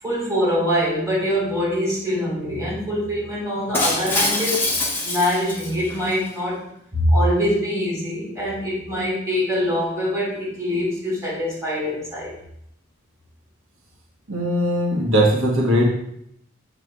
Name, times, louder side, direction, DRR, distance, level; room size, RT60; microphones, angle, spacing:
voice 1, 0.0-4.7 5.0-6.6 6.9-12.3, equal, 15° right, -7 dB, 2.6 m, -23 dB
Shatter, 3.7-6.1, left 2 dB, 10° left, 0.9 m, -24 dB
voice 2, 14.3-15.8, equal, 85° right, -2 dB, 1.4 m, -19 dB
6.8 x 3.3 x 4.9 m, 0.74 s
head